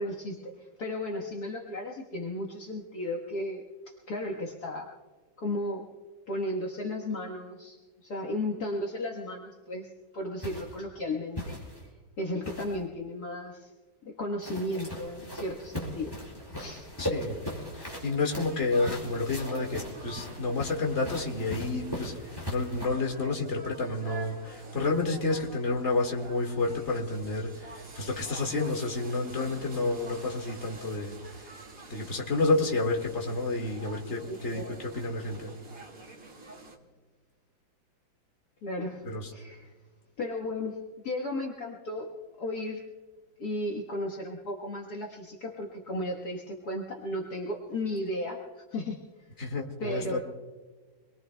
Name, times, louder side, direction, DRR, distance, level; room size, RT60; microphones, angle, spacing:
voice 1, 0.0-4.9 5.4-5.9 6.3-11.7 12.2-13.7 14.1-16.1 16.5-16.9 34.3-34.7 38.6-39.7 40.2-40.8 41.0-42.1 42.4-42.8 43.4-49.0 49.8-50.2, left 1 dB, 55° left, -1 dB, 1.9 m, -35 dB
sound 1, 10.4-10.8 11.3-11.9 12.4-12.8 14.4-22.8, equal, 10° left, 4.6 m, -39 dB
voice 2, 17.0-17.4 17.7-22.1 22.5-31.1 31.9-35.5 39.0-39.3 49.4-50.2, left 3 dB, 35° left, 1 dB, 2.2 m, -30 dB
sound 2, 17.2-36.8, right 3 dB, 45° right, 2.4 m, -47 dB
26.5 x 22.0 x 2.2 m, 1.4 s
omnidirectional pair, 2.0 m